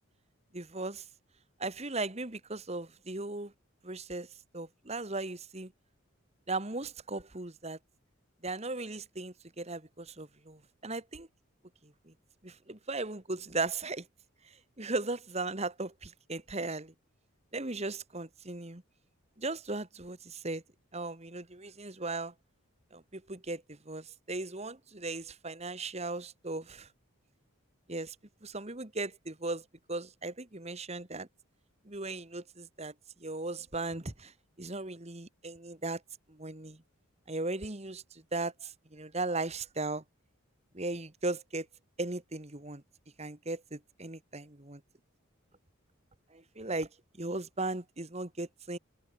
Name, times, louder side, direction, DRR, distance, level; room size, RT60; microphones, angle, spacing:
voice 1, 0.5-1.0 1.6-3.5 3.8-4.3 4.5-5.7 6.5-7.8 8.4-11.3 11.8-12.1 12.4-14.1 14.8-16.9 17.5-18.8 19.4-20.6 20.9-22.3 22.9-26.9 27.9-28.2 28.4-31.3 31.9-32.9 33.2-34.3 34.6-36.0 36.3-36.8 37.3-40.0 40.7-41.7 42.0-42.8 43.2-44.8 46.3-46.9 47.2-48.8, right 2 dB, 30° right, 1.9 m, -37 dB
head